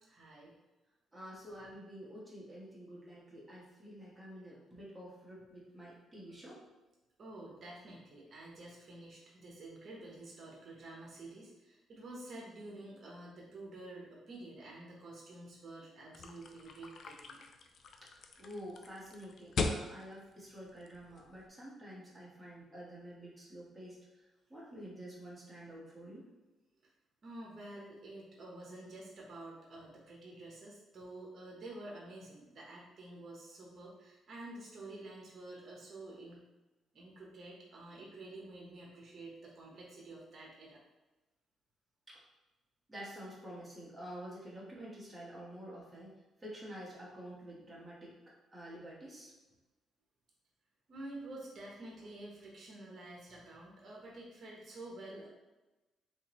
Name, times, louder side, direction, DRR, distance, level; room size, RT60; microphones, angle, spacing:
voice 1, 0.1-0.6 7.2-17.4 27.2-36.5 36.9-40.8 50.9-55.3, right 2 dB, 50° right, -3 dB, 0.9 m, -49 dB
voice 2, 1.1-6.6 18.0-24.0 24.5-26.2 42.1-42.2 42.9-46.1 46.4-48.1 48.5-49.3, equal, 10° right, -7 dB, 1.3 m, -49 dB
sound 1, 16.1-21.5, left 4 dB, 55° left, 0.4 m, -40 dB
3.5 x 2.9 x 3.0 m, 1.1 s
cardioid pair, 90°, 0 cm